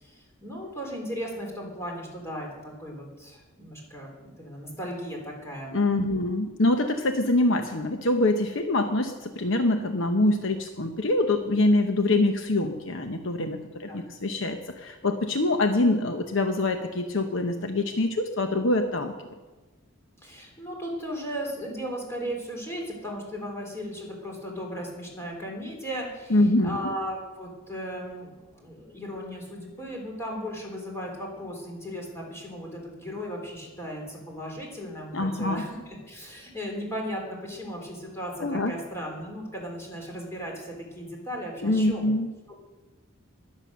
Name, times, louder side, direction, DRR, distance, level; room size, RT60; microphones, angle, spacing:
voice 1, 0.0-6.3 13.7-14.0 20.2-26.4 26.6-42.1 42.5-42.6, equal, 15° left, -1 dB, 3.6 m, -36 dB
voice 2, 5.7-19.1 26.3-26.8 35.1-35.6 38.4-38.7 41.6-42.3, left 2 dB, 60° left, 6 dB, 0.9 m, -24 dB
20.5 x 7.5 x 6.4 m, 1.2 s
head